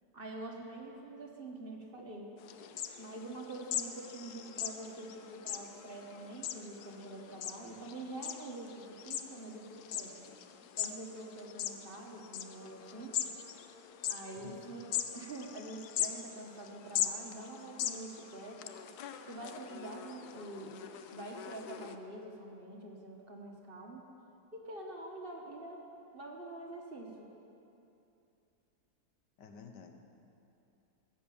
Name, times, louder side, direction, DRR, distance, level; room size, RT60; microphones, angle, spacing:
voice 1, 0.1-2.3 3.0-10.3 10.8-13.1 14.1-18.8 19.3-20.8 21.1-24.1 24.5-25.8 26.1-27.3, right 2 dB, 35° right, 0 dB, 1.2 m, -46 dB
sound 1, 2.4-22.0, left 10 dB, 75° left, 1.1 m, -41 dB
voice 2, 14.4-14.8 29.4-30.0, left 5 dB, 90° left, 5 dB, 1.6 m, -51 dB
14.5 x 7.9 x 7.0 m, 2.8 s
omnidirectional pair, 1.8 m